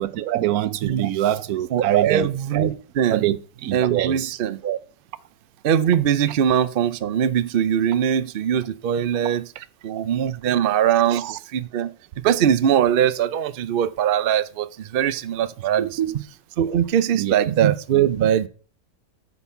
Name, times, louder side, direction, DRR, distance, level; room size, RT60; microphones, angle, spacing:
voice 1, 0.0-2.3 3.1-3.4 3.6-4.3 11.1-11.3 15.8-16.2 17.1-17.5, right 13 dB, 85° right, 1.1 m, -24 dB
voice 2, 0.8-1.1 1.7-3.3 3.7-4.8 5.6-9.5 9.8-11.2 11.5-11.9 12.2-16.0 16.6-18.5, right 9 dB, 55° right, 0.6 m, -21 dB
9.6 x 4.1 x 7.1 m
omnidirectional pair, 1.5 m